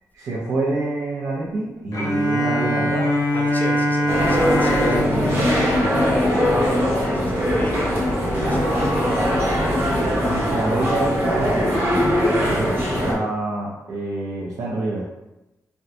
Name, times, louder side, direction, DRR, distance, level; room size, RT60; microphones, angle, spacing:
voice 1, 0.1-3.1 4.9-5.5 10.2-15.1, right 2 dB, 85° right, -6 dB, 0.6 m, -27 dB
Bowed string instrument, 1.9-6.9, left 1 dB, 80° left, 0.7 m, -23 dB
voice 2, 3.3-9.3, left 1 dB, 30° left, 0 dB, 0.5 m, -31 dB
sound 1, 4.1-13.1, equal, 35° right, 0.9 m, -21 dB
3.5 x 2.2 x 2.7 m, 0.97 s
wide cardioid pair, 150°, 6 cm